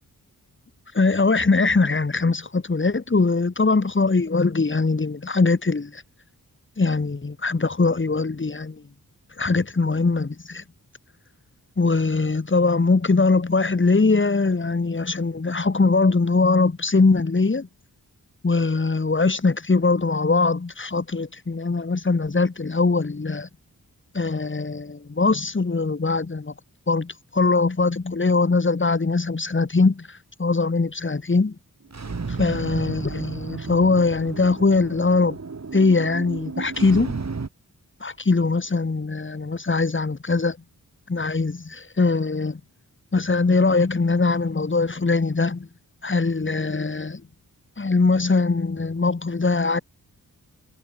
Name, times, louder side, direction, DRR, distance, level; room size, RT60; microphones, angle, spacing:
voice 1, 0.9-6.0 6.8-8.8 9.4-10.6 11.8-17.7 18.4-23.5 24.1-26.5 26.9-30.1 30.4-31.5 32.4-35.4 35.7-37.1 38.0-40.6 41.1-42.6 43.1-45.7 46.0-47.2 47.8-49.8, left 3 dB, 35° left, 2.1 m, -21 dB
sound 1, 31.8-37.5, right 4 dB, 45° right, 3.7 m, -33 dB
wide cardioid pair, 80°, 36 cm